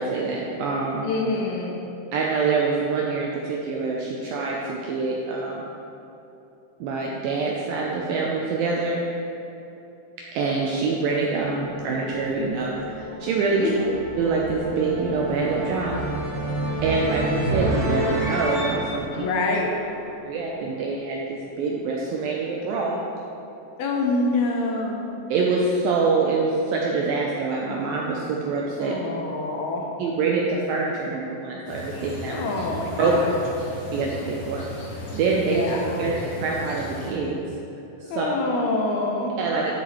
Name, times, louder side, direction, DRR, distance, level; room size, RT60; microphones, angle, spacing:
voice 1, 0.0-1.1 2.1-5.7 6.8-9.0 10.4-13.7 14.2-16.0 16.8-19.2 20.2-23.0 25.3-28.9 30.0-32.4 33.0-33.2 33.9-34.7 35.1-35.6 36.0-36.1 36.4-37.4 38.0-38.3 39.4-39.7, right 4 dB, 90° right, -2 dB, 2.1 m, -25 dB
voice 2, 1.0-1.8 13.6-13.9 19.2-19.7 23.8-25.1 28.8-29.8 32.3-33.3 35.5-36.1 38.1-39.3, left 2 dB, 80° left, 0 dB, 2.6 m, -26 dB
sound 1, 11.3-20.4, equal, 60° right, 1.9 m, -30 dB
sound 2, 31.7-37.1, left 2 dB, 55° left, 2.3 m, -36 dB
12.0 x 6.9 x 3.1 m, 2.9 s
omnidirectional pair, 4.8 m